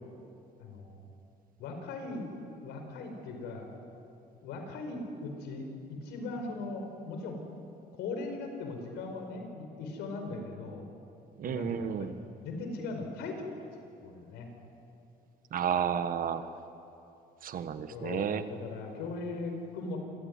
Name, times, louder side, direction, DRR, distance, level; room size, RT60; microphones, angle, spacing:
voice 1, 0.6-1.0 1.6-2.3 2.6-3.7 4.4-7.4 7.9-10.9 11.5-13.5 14.0-14.5 17.9-20.0, left 3 dB, 85° left, 4 dB, 4.9 m, -39 dB
voice 2, 11.4-12.1 15.5-16.5 17.4-18.4, right 8 dB, 55° right, 11 dB, 1.5 m, -32 dB
27.5 x 16.0 x 9.8 m, 2.8 s
cardioid pair, 110°, 17 cm